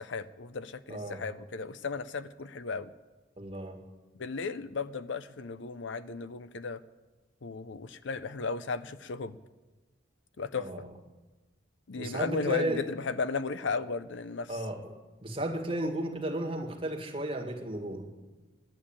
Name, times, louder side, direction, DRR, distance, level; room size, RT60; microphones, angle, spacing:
voice 1, 0.0-2.9 4.2-6.8 7.4-9.4 10.4-10.7 11.9-14.6, left 4 dB, 70° left, 14 dB, 0.6 m, -35 dB
voice 2, 0.9-1.2 3.4-3.8 10.6-10.9 12.0-12.8 14.5-14.9 15.2-18.1, right 1 dB, 25° right, 2 dB, 1.8 m, -34 dB
13.0 x 11.0 x 8.8 m, 1.2 s
head